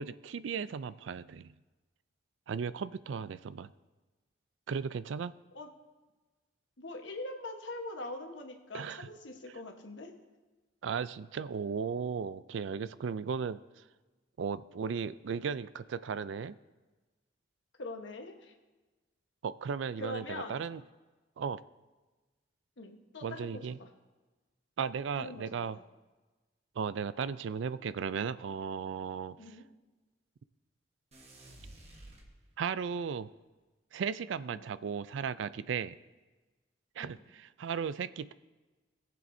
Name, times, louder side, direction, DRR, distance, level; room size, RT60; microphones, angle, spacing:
voice 1, 0.0-1.5 2.5-3.7 4.7-5.3 8.7-9.1 10.8-13.6 14.4-16.6 19.4-20.8 21.4-21.6 23.2-23.8 24.8-25.8 26.8-29.6 32.6-33.3 33.9-36.0 37.0-38.3, right 6 dB, 80° right, 16 dB, 0.4 m, -36 dB
voice 2, 6.8-10.1 17.8-18.5 20.0-20.6 22.8-23.9 25.2-25.7 29.4-29.6 34.5-34.7 37.0-37.2, left 2 dB, 80° left, 3 dB, 1.2 m, -43 dB
sound 1, 31.1-32.9, right 1 dB, 35° right, 1.3 m, -53 dB
18.5 x 7.6 x 2.7 m, 1.2 s
head